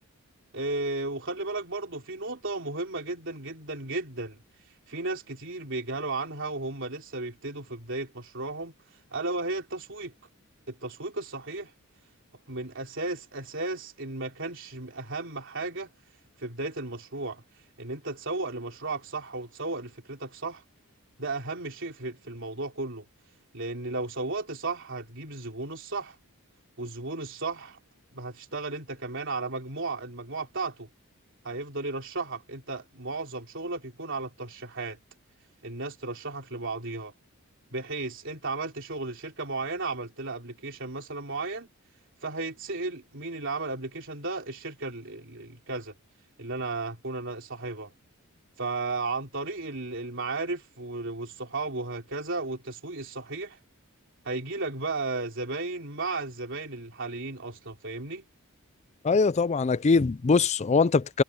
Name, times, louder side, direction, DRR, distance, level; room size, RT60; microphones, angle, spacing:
voice 1, 0.5-4.4 4.9-8.7 9.1-10.1 10.7-11.7 12.5-15.9 16.4-17.4 17.8-20.6 21.2-23.0 23.5-26.2 26.8-27.8 28.1-30.9 31.4-35.0 35.6-37.1 37.7-41.7 42.2-45.9 46.4-47.9 48.6-53.6 54.2-58.2, right 3 dB, 55° right, 3.8 m, -34 dB
voice 2, 59.0-61.2, left 4 dB, 30° left, 0.4 m, -22 dB
head